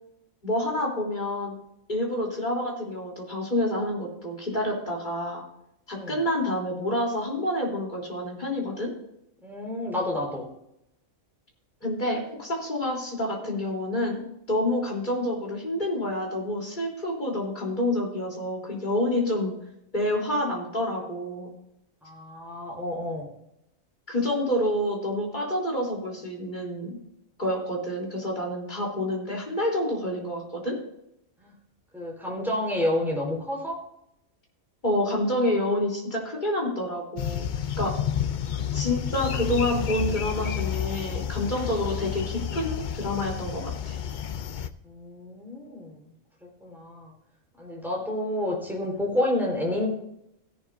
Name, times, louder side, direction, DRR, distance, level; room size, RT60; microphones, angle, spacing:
voice 1, 0.4-1.6 1.9-5.4 5.9-8.9 11.8-19.5 19.9-21.5 24.1-27.0 27.4-30.8 34.8-37.5 37.8-38.0 38.7-44.0, left 1 dB, 35° left, -3 dB, 3.8 m, -28 dB
voice 2, 5.9-6.2 9.4-10.4 22.0-23.3 31.4-31.5 31.9-33.8 38.5-38.8 44.8-46.0 46.6-47.1 47.6-49.9, left 1 dB, ahead, -2 dB, 4.5 m, -29 dB
sound 1, 37.2-44.7, left 9 dB, 55° left, 0.5 m, -30 dB
16.0 x 11.5 x 2.7 m, 0.80 s
omnidirectional pair, 1.4 m